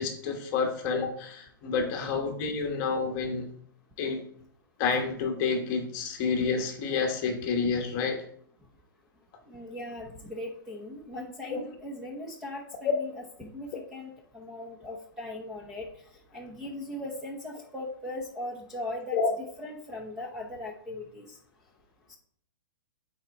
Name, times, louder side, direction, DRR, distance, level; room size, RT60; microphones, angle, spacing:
voice 1, 0.0-3.5 4.0-4.2 4.8-8.2 11.5-11.6 12.8-12.9 19.1-19.3, left 5 dB, 25° left, 3 dB, 1.2 m, -29 dB
voice 2, 9.5-13.1 13.4-15.9 16.3-19.2 19.6-21.4 22.1-22.2, left 1 dB, 5° right, -2 dB, 0.8 m, -39 dB
8.0 x 4.5 x 4.1 m, 0.63 s
hypercardioid pair, 165°, 12 cm